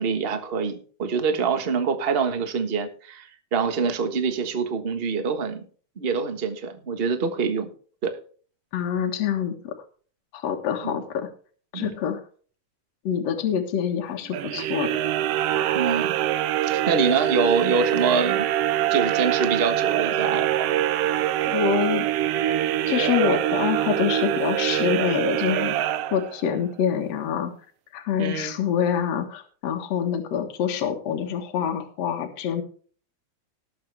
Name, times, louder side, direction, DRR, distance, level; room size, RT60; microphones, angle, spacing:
voice 1, 0.0-5.6 6.0-7.7 8.0-8.1 10.8-11.0 11.7-11.9 15.7-16.1 16.6-18.5 18.9-20.7 28.2-28.5, right 5 dB, 50° right, 7 dB, 0.6 m, -25 dB
voice 2, 8.7-9.7 10.3-11.3 11.7-12.2 13.0-14.9 21.5-22.1 22.9-27.5 27.9-32.6, left 8 dB, 65° left, 3 dB, 2.5 m, -26 dB
sound 1, 14.3-26.6, right 12 dB, 75° right, 1.5 m, -24 dB
19.0 x 7.5 x 3.4 m, 0.42 s
omnidirectional pair, 3.4 m